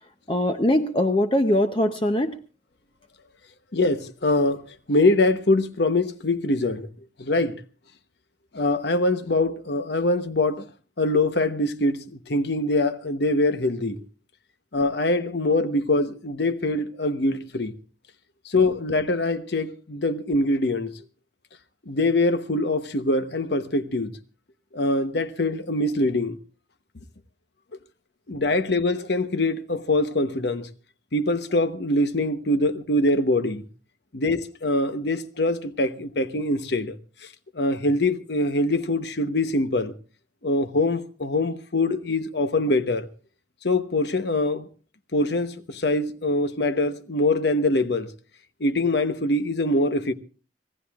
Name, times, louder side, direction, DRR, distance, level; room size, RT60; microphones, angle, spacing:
voice 1, 0.3-2.4, left 1 dB, 25° left, 0.7 m, -22 dB
voice 2, 3.7-6.9 7.2-7.6 8.5-10.7 11.0-14.0 14.7-17.8 18.4-21.0 21.9-24.1 24.7-26.4 28.3-30.7 31.1-33.6 34.1-37.0 37.5-39.9 40.4-43.1 43.6-44.7 45.1-48.1 48.6-50.1, left 2 dB, 60° left, 1.0 m, -23 dB
25.5 x 17.5 x 2.4 m
head